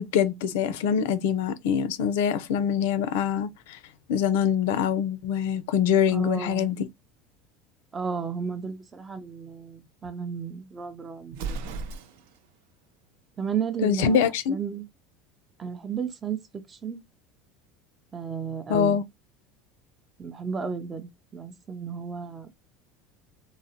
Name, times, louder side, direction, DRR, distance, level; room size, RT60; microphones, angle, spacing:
voice 1, 0.0-3.8 4.1-6.8 13.8-14.6 18.7-19.0, left 8 dB, 90° left, 0.4 m, -24 dB
voice 2, 6.1-6.7 7.9-11.6 13.4-14.2 14.5-14.9 15.6-16.4 16.7-17.0 18.1-19.0 20.2-22.5, right 6 dB, 15° right, 0.4 m, -33 dB
Explosion, 11.3-12.5, right 4 dB, 70° right, 0.5 m, -35 dB
3.8 x 2.0 x 2.7 m
cardioid pair, 175°, 0 cm